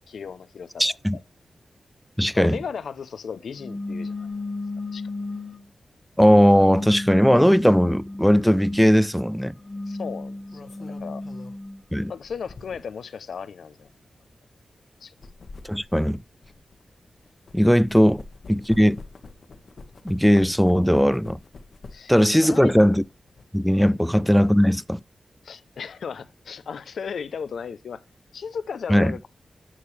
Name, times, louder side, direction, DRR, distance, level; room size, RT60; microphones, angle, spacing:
voice 1, 0.1-0.9 2.3-4.3 4.9-5.0 9.9-11.2 12.1-13.9 15.0-15.1 21.9-22.7 23.8-24.0 25.4-28.0 28.3-29.3, left 6 dB, 90° left, 0.6 m, -35 dB
voice 2, 0.8-1.2 2.2-2.6 6.2-9.6 11.9-12.1 15.7-16.2 17.5-18.2 18.5-19.0 20.0-21.4 22.1-23.0 23.5-25.0 28.9-29.1, equal, ahead, 0.4 m, -18 dB
sound 1, 3.6-5.6 6.2-8.9 9.5-11.8, left 2 dB, 30° left, 1.4 m, -34 dB
sound 2, 8.7-8.9 10.2-13.1 13.7-13.9 15.0-17.6 17.9-22.2 22.6-23.4, left 3 dB, 70° left, 1.3 m, -46 dB
10.0 x 6.6 x 3.3 m
cardioid pair, 70°, 0 cm